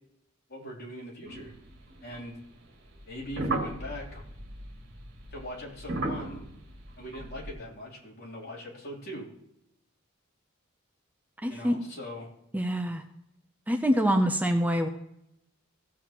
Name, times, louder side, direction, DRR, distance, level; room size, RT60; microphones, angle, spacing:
voice 1, 0.5-1.5 2.0-2.4 3.1-4.2 5.3-6.5 7.0-9.3 11.5-12.3, equal, 50° left, -4 dB, 3.4 m, -41 dB
sound 1, 1.3-2.3 2.9-7.5, right 2 dB, 55° right, 2.1 m, -36 dB
voice 2, 11.4-11.8 12.5-13.0 13.7-14.9, equal, 10° right, 5 dB, 0.6 m, -25 dB
16.5 x 7.7 x 3.0 m, 0.82 s
head